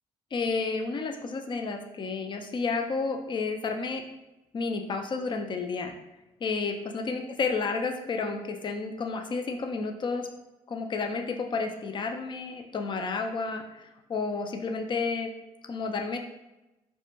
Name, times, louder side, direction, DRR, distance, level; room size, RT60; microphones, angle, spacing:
voice 1, 0.3-4.0 4.5-5.9 6.4-10.3 10.7-15.3 15.6-16.2, left 4 dB, 35° left, 5 dB, 0.4 m, -31 dB
2.1 x 2.1 x 2.9 m, 1.0 s
supercardioid pair, 65°, 14 cm